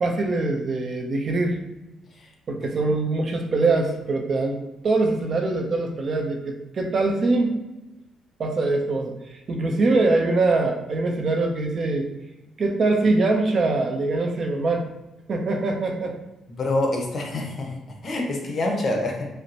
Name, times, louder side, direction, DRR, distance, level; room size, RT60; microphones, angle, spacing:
voice 1, 0.0-1.6 2.5-4.6 4.8-7.6 8.4-9.1 9.5-12.1 12.6-14.9 15.3-16.2, right 3 dB, 50° right, 2 dB, 0.6 m, -23 dB
voice 2, 16.5-17.8 18.0-19.3, left 2 dB, 50° left, 2 dB, 0.8 m, -26 dB
5.2 x 2.0 x 2.8 m, 1.0 s
cardioid pair, 90°, 0 cm